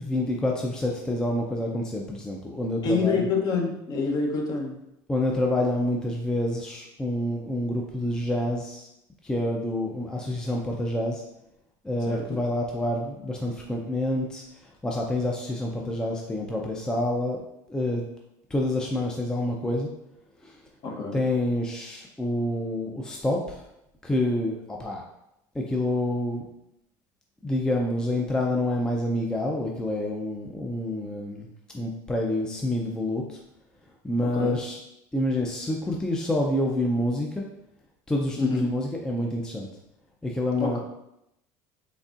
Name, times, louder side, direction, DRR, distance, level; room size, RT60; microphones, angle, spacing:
voice 1, 0.0-3.3 5.1-8.9 9.2-11.2 11.8-14.4 14.8-17.4 17.7-18.0 18.5-19.9 20.4-20.6 21.1-23.6 24.0-25.0 25.5-26.4 27.4-31.5 31.7-33.4 34.0-34.8 35.1-37.4 38.1-39.7 40.2-40.8, left 1 dB, 5° left, 0 dB, 0.4 m, -27 dB
voice 2, 2.8-4.8 12.1-12.4 20.8-21.2 34.3-34.6 38.4-38.6 40.6-40.8, left 4 dB, 45° left, 1 dB, 0.8 m, -27 dB
4.0 x 3.6 x 2.4 m, 0.82 s
cardioid pair, 125°, 10 cm